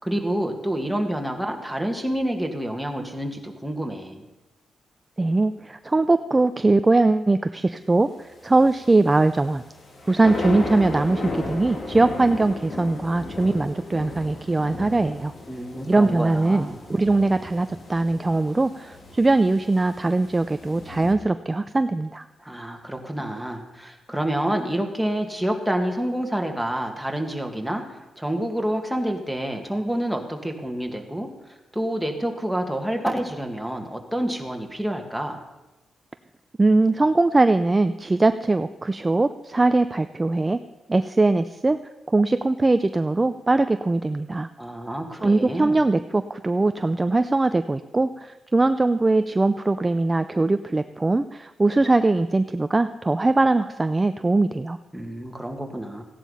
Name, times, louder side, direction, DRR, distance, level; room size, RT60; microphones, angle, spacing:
voice 1, 0.0-4.2 15.5-16.8 22.4-35.4 44.6-45.8 54.9-56.0, right 1 dB, ahead, 2 dB, 2.1 m, -28 dB
voice 2, 5.2-9.6 10.1-15.3 15.9-22.3 36.6-40.6 40.9-41.8 42.1-44.5 45.2-54.8, right 2 dB, 20° right, 10 dB, 0.5 m, -21 dB
sound 1, 8.1-21.1, left 2 dB, 50° left, 2.3 m, -35 dB
15.5 x 10.5 x 5.6 m, 1.0 s
cardioid pair, 85°, 0 cm